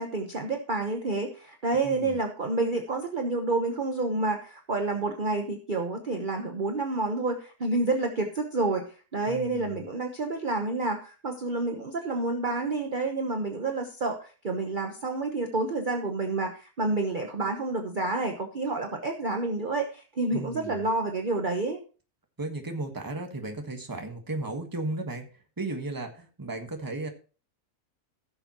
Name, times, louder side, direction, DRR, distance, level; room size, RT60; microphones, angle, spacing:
voice 1, 0.0-21.8, right 3 dB, 35° right, 3 dB, 1.1 m, -29 dB
voice 2, 1.8-2.2 9.3-9.8 20.3-20.8 22.4-25.3 25.6-27.1, right 2 dB, 15° right, 4 dB, 1.3 m, -35 dB
16.5 x 6.9 x 3.0 m, 0.36 s
omnidirectional pair, 1.7 m